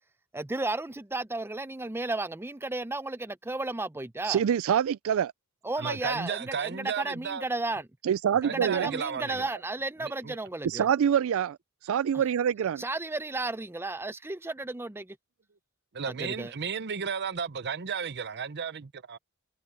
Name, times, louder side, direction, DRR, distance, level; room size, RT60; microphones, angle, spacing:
voice 1, 0.3-4.4 5.6-7.9 8.4-10.9 12.8-15.2 16.1-16.5, right 2 dB, 10° right, 0.6 m, -33 dB
voice 2, 4.2-5.3 8.0-8.9 10.6-11.6 11.8-12.8, right 8 dB, 70° right, 0.3 m, -25 dB
voice 3, 5.8-7.4 8.4-9.5 10.0-10.4 15.9-19.2, right 6 dB, 55° right, 0.8 m, -34 dB
head